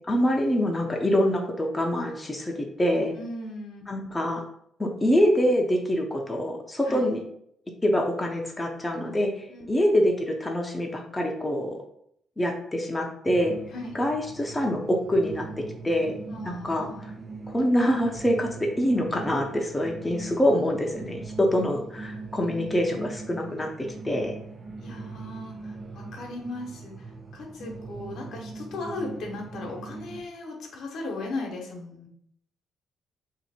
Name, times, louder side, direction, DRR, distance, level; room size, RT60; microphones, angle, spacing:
voice 1, 0.0-3.2 3.9-4.4 4.8-7.2 7.8-11.8 12.4-13.5 13.9-15.5 15.8-16.2 16.4-17.1 17.5-24.3, equal, 15° left, 1 dB, 0.6 m, -25 dB
voice 2, 3.2-4.1 6.8-7.1 9.5-9.9 13.7-14.0 16.3-17.0 22.5-23.0 24.8-32.1, left 2 dB, 75° left, 1 dB, 0.9 m, -37 dB
sound 1, 13.3-30.3, right 3 dB, 30° right, 0.4 m, -41 dB
2.8 x 2.5 x 4.2 m, 0.70 s
cardioid pair, 90°, 0 cm